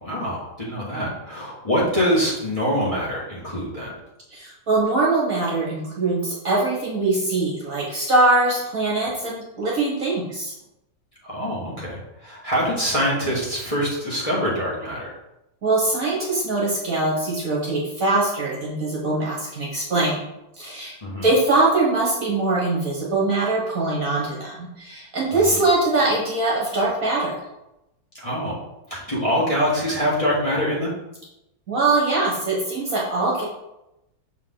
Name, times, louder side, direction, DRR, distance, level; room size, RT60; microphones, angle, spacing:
voice 1, 0.0-3.9 11.2-15.1 21.0-21.3 25.3-25.6 28.1-28.5 28.9-30.9, equal, 20° left, -7 dB, 1.6 m, -24 dB
voice 2, 4.3-10.5 15.6-20.2 20.6-20.9 21.2-27.4 31.7-33.4, right 2 dB, 50° right, -4 dB, 1.5 m, -22 dB
6.6 x 4.7 x 3.8 m, 0.90 s
omnidirectional pair, 2.2 m